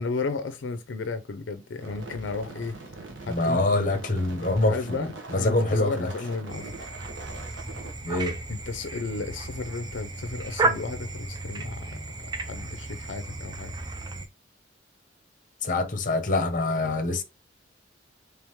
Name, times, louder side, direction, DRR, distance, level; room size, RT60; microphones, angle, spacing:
voice 1, 0.0-2.8 3.2-3.6 4.5-6.9 8.5-12.0 12.4-13.7, left 4 dB, 80° left, 0.5 m, -33 dB
sound 1, 1.8-7.9, right 3 dB, 85° right, 1.0 m, -42 dB
voice 2, 3.3-4.7 5.3-6.1 8.0-8.4 15.6-17.2, left 2 dB, 45° left, 0.7 m, -24 dB
sound 2, 6.5-14.3, right 3 dB, 20° right, 0.4 m, -33 dB
3.5 x 3.4 x 2.9 m
head